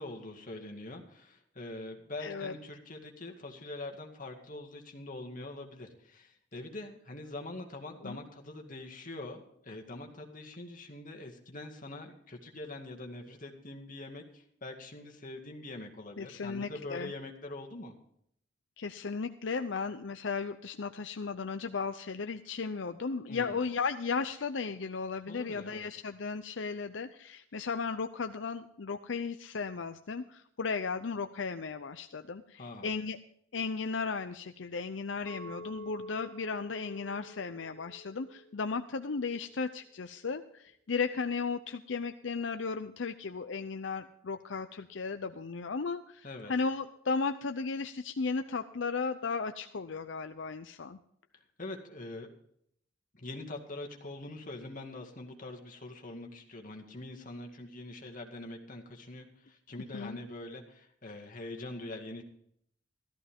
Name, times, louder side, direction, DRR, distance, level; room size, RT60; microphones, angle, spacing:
voice 1, 0.0-17.9 23.3-23.6 25.3-25.9 32.6-32.9 46.2-46.5 51.6-52.3 53.1-62.2, left 2 dB, 45° left, 3 dB, 2.1 m, -44 dB
voice 2, 2.2-2.5 8.0-8.2 16.2-17.1 18.8-33.2 33.5-51.0 59.9-60.2, left 4 dB, 75° left, 9 dB, 0.6 m, -35 dB
Chink clink, 35.3-39.5, left 1 dB, 10° left, 6.8 m, -49 dB
14.5 x 13.5 x 3.6 m, 0.69 s
head